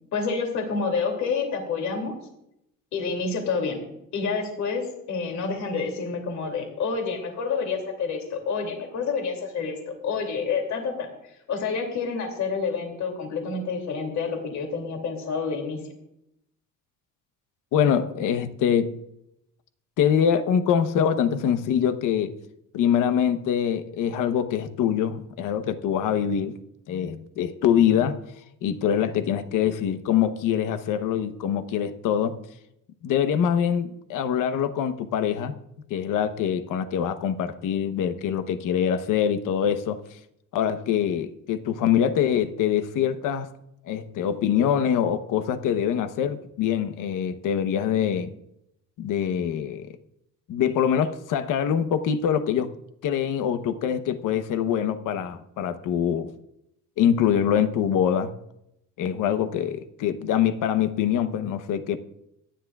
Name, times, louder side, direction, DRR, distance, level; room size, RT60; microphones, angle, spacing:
voice 1, 0.1-2.2 2.9-3.8 4.1-11.1 11.5-15.8, left 5 dB, 60° left, 3 dB, 2.7 m, -28 dB
voice 2, 17.7-19.0 20.0-22.4 22.7-26.5 26.9-28.2 28.6-32.4 33.0-35.5 35.9-40.0 40.5-43.5 43.9-48.3 49.0-49.9 50.5-52.7 53.0-56.3 57.0-58.3 59.0-62.0, left 8 dB, 85° left, 9 dB, 1.0 m, -24 dB
24.0 x 10.0 x 2.4 m, 0.80 s
cardioid pair, 170°, 31 cm